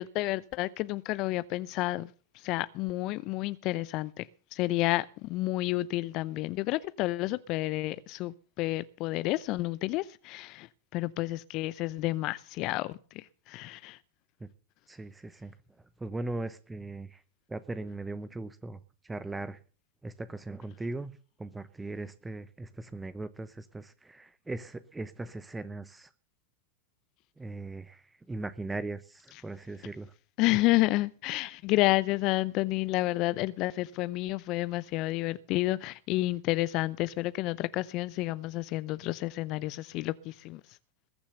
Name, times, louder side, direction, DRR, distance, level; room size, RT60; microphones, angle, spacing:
voice 1, 0.0-2.1 2.4-4.2 4.5-10.7 10.9-14.0 30.4-40.6, left 18 dB, 50° left, 0.6 m, -30 dB
voice 2, 14.9-15.5 16.0-17.2 17.5-18.8 19.0-19.6 20.0-26.1 27.4-30.1, right 2 dB, 10° right, 0.9 m, -39 dB
21.0 x 7.3 x 6.7 m
hypercardioid pair, 90°, 0 cm